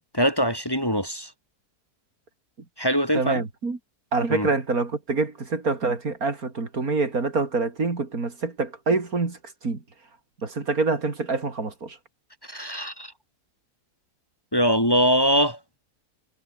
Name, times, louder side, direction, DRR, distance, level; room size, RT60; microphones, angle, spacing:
voice 1, 0.1-1.3 2.8-3.4 4.3-4.5 12.5-13.1 14.5-15.6, equal, 15° left, 6.8 m, -22 dB
voice 2, 3.1-3.8 4.1-9.4 9.6-9.8 10.4-12.0, right 3 dB, 60° right, 3.6 m, -26 dB
omnidirectional pair, 1.7 m